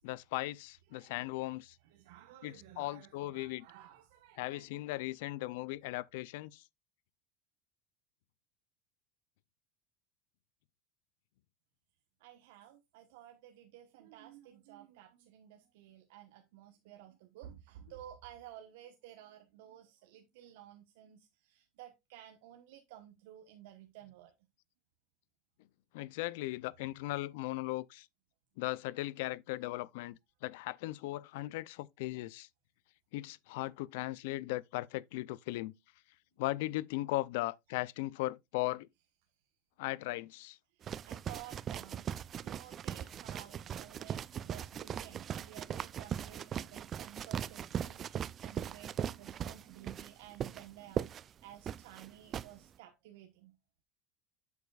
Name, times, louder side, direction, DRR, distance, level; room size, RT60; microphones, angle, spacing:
voice 1, 0.0-1.8 2.4-3.7 4.4-6.6 25.9-28.1 28.6-32.5 33.1-35.7 36.4-38.9 39.8-40.6, left 18 dB, 75° left, 0.4 m, -38 dB
voice 2, 0.9-1.3 1.8-4.7 12.2-24.3 40.7-42.1 42.4-51.1 51.4-53.5, right 12 dB, 80° right, 1.2 m, -54 dB
sound 1, 40.8-52.5, right 9 dB, 35° right, 0.3 m, -39 dB
8.1 x 6.9 x 2.4 m
supercardioid pair, 125°, 0 cm